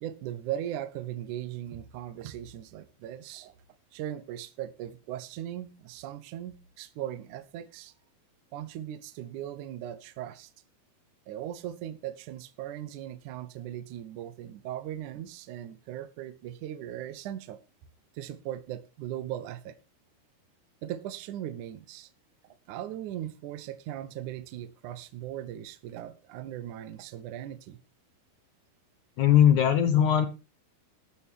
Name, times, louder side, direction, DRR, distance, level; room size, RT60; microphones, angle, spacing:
voice 1, 0.0-3.5 3.9-7.9 8.5-10.5 11.3-17.6 18.1-19.8 20.8-22.1 22.4-27.8, right 11 dB, 75° right, 1.9 m, -38 dB
voice 2, 29.2-30.3, left 10 dB, 70° left, 1.9 m, -20 dB
13.5 x 13.0 x 3.6 m
omnidirectional pair, 4.9 m